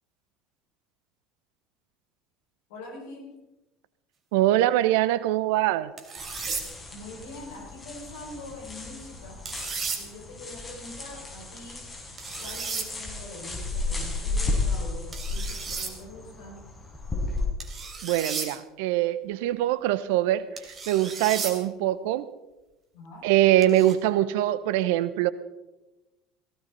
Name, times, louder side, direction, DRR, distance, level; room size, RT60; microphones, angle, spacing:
voice 1, 2.7-3.4 6.9-9.4 9.9-11.9 12.4-16.7 22.9-23.3, left 2 dB, 65° left, 0 dB, 5.3 m, -44 dB
voice 2, 4.3-5.9 18.0-20.5 20.9-22.3 23.2-25.3, right 14 dB, 65° right, 17 dB, 0.8 m, -23 dB
sound 1, 6.0-6.6 9.5-10.0 12.2-12.9 15.1-15.9 17.6-18.5 20.6-21.5 23.6-24.0, right 5 dB, 30° right, 3.3 m, -34 dB
sound 2, 6.2-17.5, left 3 dB, 20° left, 5.9 m, -34 dB
18.0 x 17.0 x 4.0 m, 1.0 s
figure-of-eight pair, 65°, 0 cm